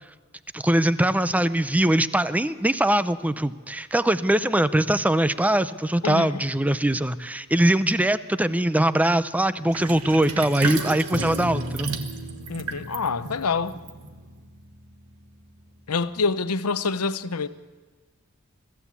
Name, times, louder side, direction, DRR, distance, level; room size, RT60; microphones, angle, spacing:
voice 1, 0.5-11.9, right 1 dB, 5° right, 0.6 m, -22 dB
Sink (filling or washing), 9.7-14.5, right 4 dB, 80° right, 1.6 m, -33 dB
sound 1, 11.1-15.6, equal, 50° right, 3.6 m, -36 dB
voice 2, 12.5-13.8 15.9-17.5, left 4 dB, 85° left, 0.8 m, -26 dB
22.5 x 15.0 x 8.4 m
head